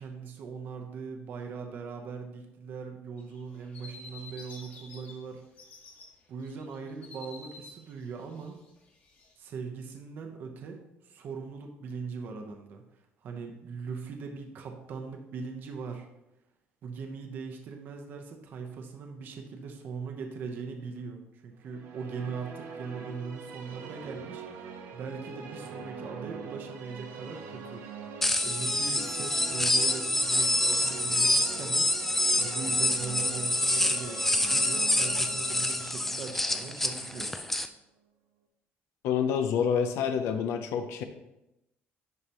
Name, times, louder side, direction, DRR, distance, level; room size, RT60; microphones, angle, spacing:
voice 1, 0.0-5.4 6.3-8.6 9.4-12.8 13.2-16.1 16.8-24.7 24.9-31.9 32.4-37.3, right 5 dB, 45° right, 3 dB, 0.8 m, -40 dB
sound 1, 3.2-5.1 5.4-6.1 6.4-9.3, left 3 dB, 45° left, 1.8 m, -49 dB
sound 2, 21.6-37.7, right 5 dB, 70° right, 1.0 m, -43 dB
sound 3, 28.2-37.7, left 1 dB, 5° left, 0.3 m, -27 dB
voice 2, 39.0-41.0, left 7 dB, 80° left, 7 dB, 0.6 m, -27 dB
11.0 x 4.8 x 2.9 m, 0.89 s
cardioid pair, 175°, 4 cm